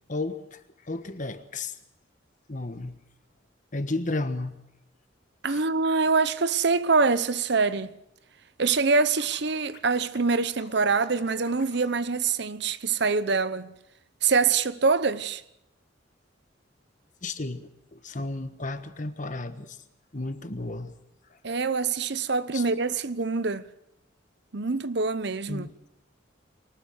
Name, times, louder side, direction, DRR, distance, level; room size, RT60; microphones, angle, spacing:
voice 1, 0.1-1.7 2.5-3.0 3.7-4.6 5.5-5.6 17.2-19.8 20.1-20.9 22.5-22.6 25.5-25.7, left 2 dB, 40° left, 1.3 m, -33 dB
voice 2, 5.4-7.9 8.6-13.7 14.2-15.4 21.4-23.6 24.5-25.7, right 4 dB, 60° right, 0.9 m, -25 dB
Scratching (performance technique), 9.2-12.0, left 4 dB, 60° left, 2.6 m, -50 dB
24.0 x 19.0 x 6.5 m
head